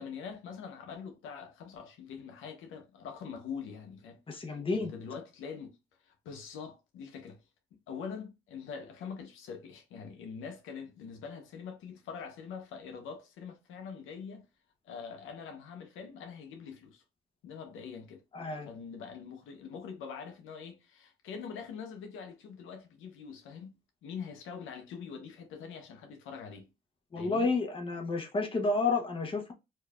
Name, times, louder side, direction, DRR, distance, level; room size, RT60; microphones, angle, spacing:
voice 1, 0.0-5.8 6.0-7.4 7.7-14.4 14.8-17.0 17.4-18.2 18.7-23.7 24.0-26.7 27.1-27.5, left 6 dB, 85° left, 0.9 m, -44 dB
voice 2, 4.3-4.9 18.3-18.7 27.1-29.5, left 3 dB, 25° left, 1.0 m, -30 dB
4.4 x 2.7 x 2.4 m
cardioid pair, 90°, 20 cm